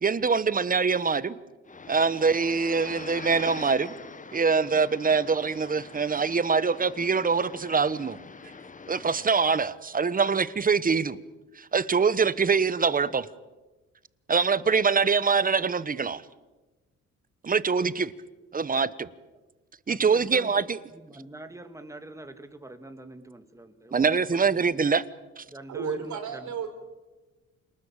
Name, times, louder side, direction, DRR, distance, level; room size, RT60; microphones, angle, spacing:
voice 1, 0.0-1.4 1.9-3.9 4.3-8.2 8.9-11.2 11.6-13.3 14.3-16.2 17.4-18.1 18.5-19.1 19.9-20.8 23.9-25.0 25.4-25.5, right 5 dB, 30° right, 1.1 m, -24 dB
sound 1, 1.7-9.3, left 4 dB, 25° left, 1.3 m, -44 dB
voice 2, 19.9-20.6 20.9-24.8 25.5-26.5, right 2 dB, 10° right, 2.2 m, -44 dB
voice 3, 25.7-26.7, right 8 dB, 75° right, 4.5 m, -33 dB
28.0 x 20.0 x 8.8 m
cardioid pair, 90°, 30 cm